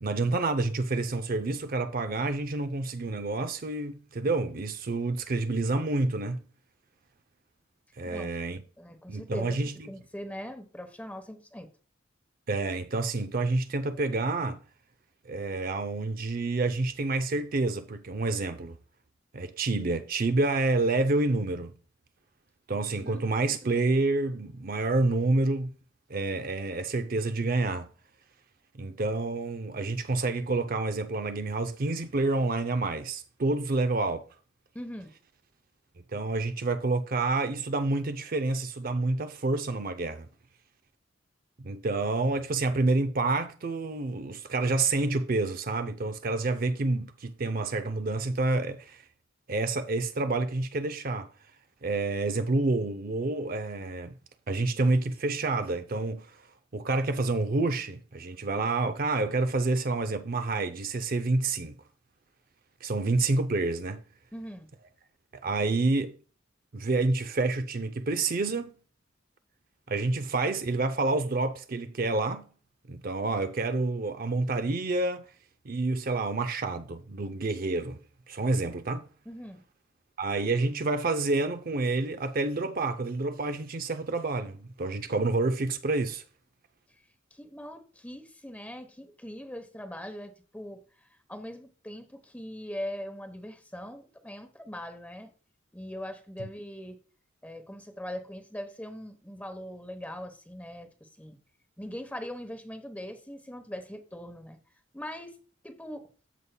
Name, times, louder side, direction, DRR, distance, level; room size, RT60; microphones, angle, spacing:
voice 1, 0.0-6.4 8.0-8.6 9.1-9.9 12.5-14.6 15.2-18.8 19.3-21.7 22.7-25.7 26.1-27.9 28.8-34.2 36.0-40.3 41.6-49.0 49.5-51.3 51.8-54.2 54.5-56.3 56.7-61.8 62.8-64.0 65.4-66.2 66.7-68.7 69.9-72.5 72.9-75.3 75.6-78.0 78.3-79.1 80.2-86.2 96.4-96.5, right 2 dB, 45° right, 0.6 m, -28 dB
voice 2, 8.0-8.4 8.8-9.6 9.9-11.7 23.0-23.2 34.7-35.1 64.3-64.7 79.2-79.6 87.3-90.8 91.3-95.3 95.7-97.0 97.4-101.4 101.8-104.6 104.9-105.4 105.6-106.1, equal, 10° left, 1.0 m, -41 dB
14.5 x 5.5 x 2.3 m
head